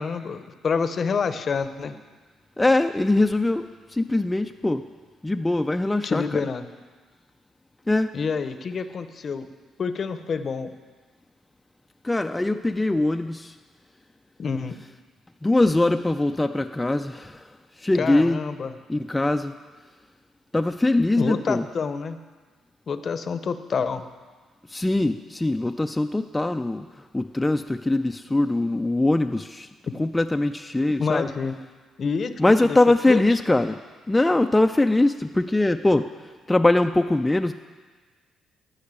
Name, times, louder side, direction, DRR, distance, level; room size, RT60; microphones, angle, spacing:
voice 1, 0.0-1.9 6.0-6.7 8.1-9.5 9.8-10.7 14.4-14.8 17.9-18.8 21.2-22.2 22.9-24.0 30.9-31.6 32.0-32.8 33.1-33.4, left 5 dB, 45° left, 11 dB, 0.7 m, -27 dB
voice 2, 2.6-3.7 3.9-4.9 5.2-6.2 7.9-8.1 12.0-13.5 15.4-17.4 17.8-18.4 18.9-19.5 20.5-21.6 24.7-26.9 27.1-29.7 30.0-31.2 32.4-33.7 34.1-36.1 36.5-37.5, left 2 dB, 10° left, 6 dB, 0.3 m, -22 dB
12.0 x 5.6 x 8.1 m, 1.4 s
cardioid pair, 90°, 0 cm